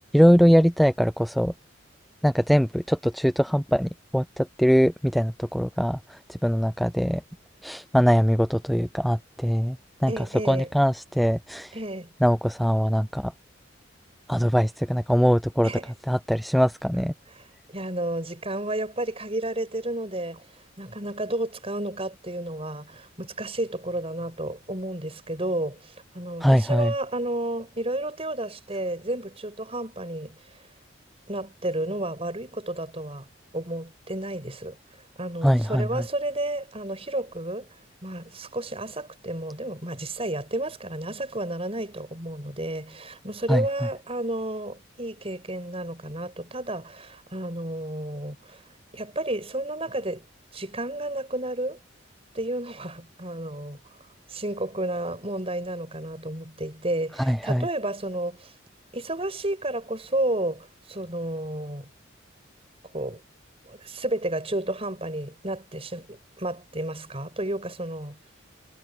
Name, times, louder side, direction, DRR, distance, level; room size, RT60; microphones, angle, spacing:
voice 1, 0.1-1.5 2.2-7.2 7.6-11.7 12.2-13.3 14.3-15.7 16.1-17.1 26.4-26.9 35.4-36.0 43.5-43.6 57.2-57.7, equal, ahead, 0.3 m, -22 dB
voice 2, 10.1-10.7 11.7-12.1 15.6-15.9 17.7-30.4 31.3-33.3 33.5-34.8 35.2-37.7 38.0-48.6 48.9-50.2 50.5-51.8 52.3-53.8 54.3-58.5 58.9-61.9 62.9-63.2 63.7-68.2, right 1 dB, 30° right, 6.8 m, -31 dB
head